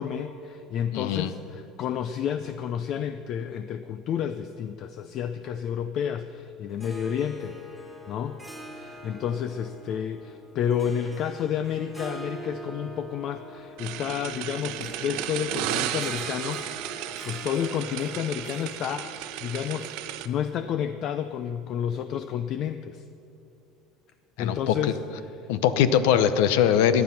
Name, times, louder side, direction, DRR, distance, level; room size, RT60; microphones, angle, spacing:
voice 1, 0.0-7.6 8.1-23.0 24.4-25.5, left 8 dB, 45° left, 11 dB, 0.5 m, -31 dB
voice 2, 0.9-1.3 24.4-24.7 25.5-27.0, left 9 dB, 80° left, 12 dB, 0.8 m, -21 dB
Harp, 6.7-20.4, right 1 dB, ahead, 1.7 m, -44 dB
sound 1, 13.8-20.3, right 12 dB, 70° right, 0.8 m, -34 dB
17.0 x 10.5 x 5.8 m, 2.8 s
cardioid pair, 140°, 0 cm